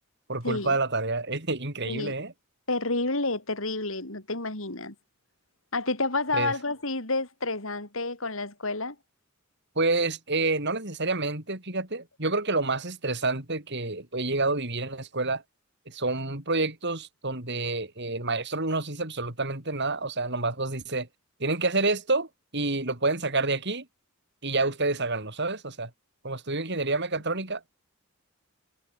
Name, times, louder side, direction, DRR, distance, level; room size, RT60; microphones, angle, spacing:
voice 1, 0.3-2.3 6.3-6.5 9.7-15.4 15.9-21.1 21.4-22.3 22.5-23.9 24.4-25.9 26.2-27.6, right 3 dB, 55° right, 5.0 m, -28 dB
voice 2, 2.7-4.9 5.7-9.0, left 2 dB, 65° left, 4.6 m, -29 dB
head